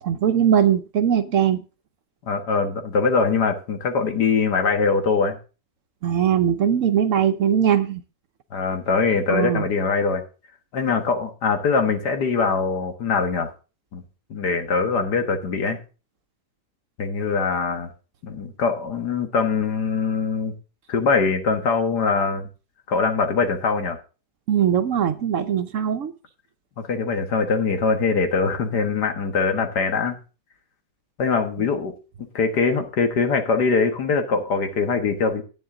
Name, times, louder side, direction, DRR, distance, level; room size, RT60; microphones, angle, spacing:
voice 1, 0.0-1.6 6.0-8.0 9.3-9.7 24.5-26.1 31.6-31.7, right 9 dB, 60° right, 0.9 m, -20 dB
voice 2, 2.2-5.4 8.5-10.2 10.7-13.5 13.9-14.0 14.3-15.8 17.0-17.9 18.2-20.5 20.9-22.5 22.9-24.0 26.8-30.2 31.2-31.9 32.3-35.4, left 4 dB, 85° left, 2.0 m, -22 dB
10.5 x 8.6 x 3.7 m
omnidirectional pair, 1.7 m